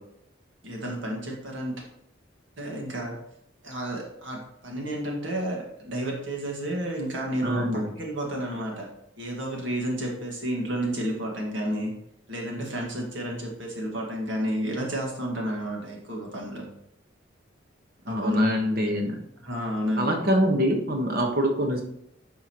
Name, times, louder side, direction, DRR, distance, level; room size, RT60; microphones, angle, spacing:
voice 1, 0.6-1.8 2.6-3.2 3.6-8.9 9.2-11.9 12.3-16.6 18.1-18.5 19.4-20.2, right 1 dB, 75° right, -1 dB, 1.8 m, -31 dB
voice 2, 7.4-7.9 18.1-19.2 20.0-21.8, equal, 50° right, 3 dB, 1.2 m, -24 dB
9.7 x 5.6 x 3.0 m, 0.76 s
head